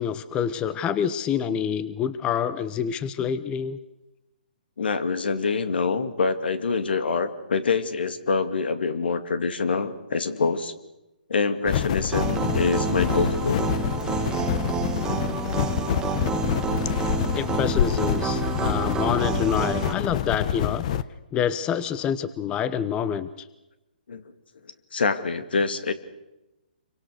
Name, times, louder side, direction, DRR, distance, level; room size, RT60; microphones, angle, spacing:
voice 1, 0.0-3.8 17.3-20.8 21.3-23.5, left 8 dB, 20° left, 15 dB, 0.8 m, -27 dB
voice 2, 4.8-10.7 11.3-13.6 24.1-24.2 24.9-25.9, left 4 dB, 75° left, 11 dB, 2.2 m, -25 dB
sound 1, 11.7-21.0, left 9 dB, 45° left, 1.0 m, -27 dB
sound 2, 12.1-19.9, right 7 dB, 15° right, 1.3 m, -29 dB
26.5 x 24.5 x 6.5 m, 0.97 s
hypercardioid pair, 145°, 5 cm